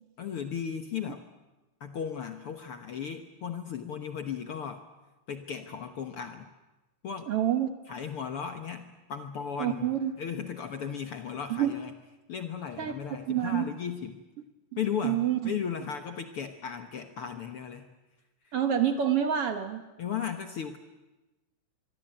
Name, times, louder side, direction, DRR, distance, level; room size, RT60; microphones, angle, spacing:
voice 1, 0.2-1.3 1.8-4.8 5.3-6.5 7.0-7.3 7.9-11.9 12.3-14.2 14.8-15.2 15.4-17.9 18.4-18.5 20.0-20.8, left 7 dB, 60° left, 7 dB, 1.6 m, -36 dB
voice 2, 7.3-7.7 9.6-10.1 11.5-11.7 12.8-12.9 13.2-13.7 15.0-15.5 18.5-19.8, right 10 dB, 55° right, 8 dB, 1.8 m, -27 dB
25.0 x 23.0 x 8.9 m, 1.1 s
omnidirectional pair, 3.8 m